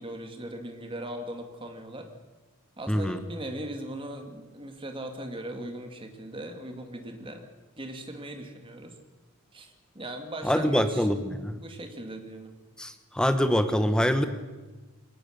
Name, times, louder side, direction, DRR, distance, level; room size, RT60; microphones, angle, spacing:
voice 1, 0.0-2.1 2.8-7.4 7.8-8.9 9.5-11.1 11.6-12.5, right 1 dB, 25° right, 5 dB, 2.2 m, -39 dB
voice 2, 2.9-3.2 10.4-11.6 12.8-14.2, equal, 5° left, 9 dB, 1.0 m, -25 dB
21.0 x 18.5 x 6.5 m, 1.2 s
head